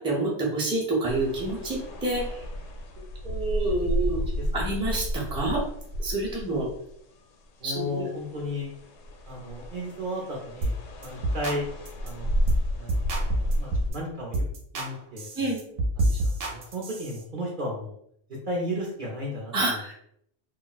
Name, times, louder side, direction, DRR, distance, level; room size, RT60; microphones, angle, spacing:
voice 1, 0.0-2.4 3.0-5.6 6.0-6.7 7.6-8.1 15.4-15.6 19.5-19.9, right 2 dB, 5° right, -4 dB, 0.5 m, -28 dB
sound 1, 1.0-7.2 7.7-13.9, equal, 80° left, 0.9 m, -32 dB
voice 2, 4.1-4.5 7.6-8.7 9.3-10.7 11.0-11.6 12.0-12.3 12.7-14.5 14.7-15.3 16.0-18.0 18.5-19.8, equal, 50° right, -2 dB, 0.7 m, -34 dB
sound 2, 10.6-10.8 11.0-11.6 11.9-12.1 12.5-12.6 12.9-14.0 14.3-14.9 15.2-17.2, right 1 dB, 80° right, 1.0 m, -28 dB
2.4 x 2.1 x 3.9 m, 0.70 s
omnidirectional pair, 1.3 m